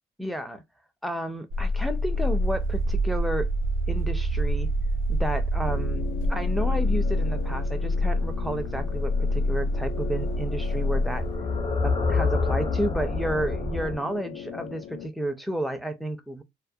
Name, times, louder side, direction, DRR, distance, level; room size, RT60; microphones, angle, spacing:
voice 1, 0.2-0.6 1.0-3.5 3.9-4.7 5.1-11.3 11.8-16.4, right 1 dB, ahead, 0.4 m, -31 dB
sound 1, 1.5-11.4, equal, 85° right, 0.7 m, -26 dB
sound 2, 5.7-15.1, left 9 dB, 60° left, 0.4 m, -39 dB
sound 3, 6.6-14.0, left 3 dB, 25° left, 0.7 m, -30 dB
2.3 x 2.1 x 2.6 m
cardioid pair, 90°, 20 cm